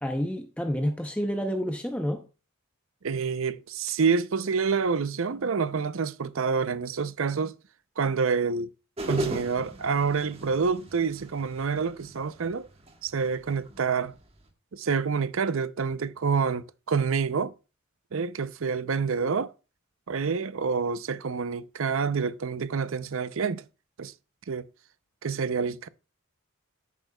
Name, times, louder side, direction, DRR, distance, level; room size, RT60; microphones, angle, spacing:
voice 1, 0.0-2.2, equal, 5° left, 0.6 m, -29 dB
voice 2, 3.0-7.5 8.0-8.7 9.1-12.7 13.0-14.1 14.7-17.5 18.1-19.5 20.1-23.6 24.0-24.1 24.5-24.7 25.2-25.9, right 5 dB, 65° right, 0.6 m, -27 dB
sound 1, 9.0-14.5, equal, 30° right, 1.4 m, -38 dB
10.5 x 8.3 x 2.3 m
head